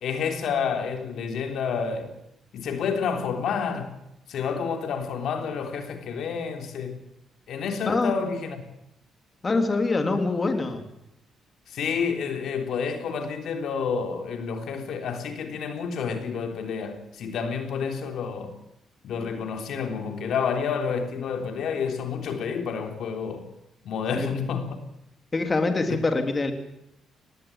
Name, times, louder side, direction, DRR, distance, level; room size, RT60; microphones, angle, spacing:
voice 1, 0.0-2.2 2.5-3.9 4.3-7.0 7.5-8.6 11.7-18.5 19.0-23.4 23.8-24.8, left 6 dB, 70° left, 3.6 m, -29 dB
voice 2, 9.4-10.8 24.1-24.3 25.3-26.5, left 3 dB, 30° left, 3.4 m, -24 dB
19.5 x 18.0 x 9.0 m
cardioid pair, 90°, 0 cm